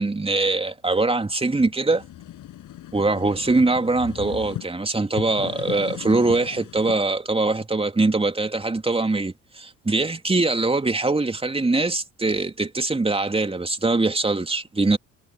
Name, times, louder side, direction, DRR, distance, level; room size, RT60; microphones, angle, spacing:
voice 1, 0.0-2.0 2.9-15.0, right 3 dB, 15° right, 3.0 m, -22 dB
sound 1, 1.6-4.7 5.1-7.0, left 12 dB, 50° left, 7.4 m, -37 dB
figure-of-eight pair, 55°, 40 cm